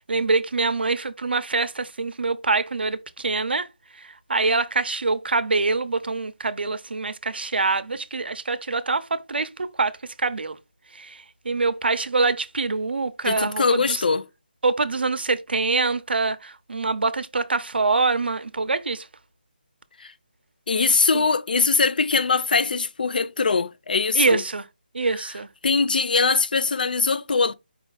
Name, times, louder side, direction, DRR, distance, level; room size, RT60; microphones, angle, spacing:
voice 1, 0.0-3.7 4.3-9.9 10.2-10.6 11.0-11.2 11.4-14.0 14.6-19.0 21.1-21.2 24.1-24.6 24.9-25.5, right 3 dB, 85° right, 0.6 m, -24 dB
voice 2, 13.2-14.2 20.0-20.1 20.7-24.4 25.6-27.5, left 4 dB, 60° left, 0.4 m, -22 dB
5.0 x 2.4 x 3.9 m
hypercardioid pair, 175°, 5 cm